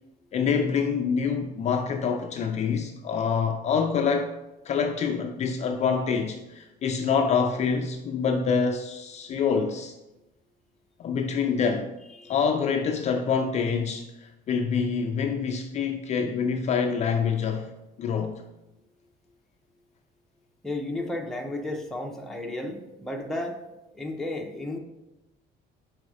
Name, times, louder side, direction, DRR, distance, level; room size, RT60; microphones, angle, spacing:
voice 1, 0.3-4.3 4.7-9.9 11.0-11.9 12.3-17.7 18.0-18.4, left 6 dB, 35° left, 0.4 m, -26 dB
voice 2, 20.6-23.6 23.9-24.8, left 1 dB, ahead, 0.7 m, -33 dB
5.1 x 4.7 x 4.8 m
cardioid pair, 155°, 19 cm